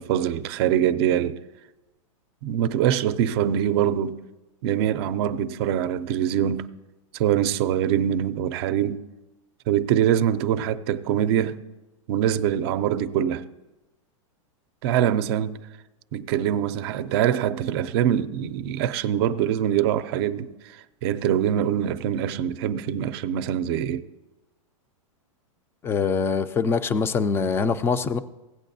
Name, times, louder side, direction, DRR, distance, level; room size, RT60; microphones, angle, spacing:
voice 1, 0.0-1.4 2.4-4.2 4.6-6.7 7.1-9.0 9.7-11.6 12.1-13.4 14.8-15.6 16.1-20.5 21.0-24.0, right 10 dB, 50° right, 0.5 m, -24 dB
voice 2, 25.8-28.2, left 5 dB, 15° left, 0.3 m, -23 dB
16.0 x 8.3 x 2.7 m
hypercardioid pair, 140°, 17 cm